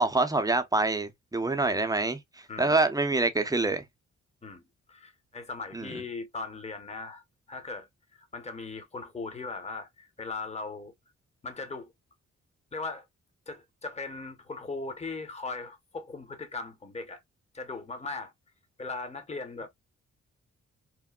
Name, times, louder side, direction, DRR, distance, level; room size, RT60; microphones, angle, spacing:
voice 1, 0.0-2.2 2.6-3.8 5.7-5.9, right 2 dB, 10° right, 0.6 m, -26 dB
voice 2, 2.5-2.8 4.4-7.2 7.5-10.9 11.4-11.9 12.7-13.1 13.5-17.2 17.5-18.3 18.8-19.7, left 3 dB, 20° left, 0.9 m, -39 dB
2.9 x 2.1 x 2.2 m
supercardioid pair, 50°, 31 cm